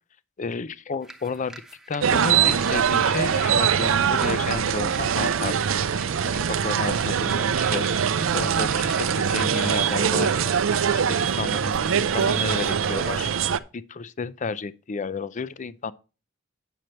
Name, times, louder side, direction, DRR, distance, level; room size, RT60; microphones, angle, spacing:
voice 1, 0.4-1.6 1.9-5.6 6.3-10.5 11.1-13.3 13.7-15.9, left 4 dB, 40° left, 0.5 m, -32 dB
sound 1, 1.0-13.3, right 1 dB, 5° right, 0.9 m, -45 dB
sound 2, 2.0-13.6, right 7 dB, 70° right, 0.5 m, -23 dB
sound 3, 2.1-7.1, left 2 dB, 85° left, 5.0 m, -48 dB
9.2 x 6.5 x 4.4 m
head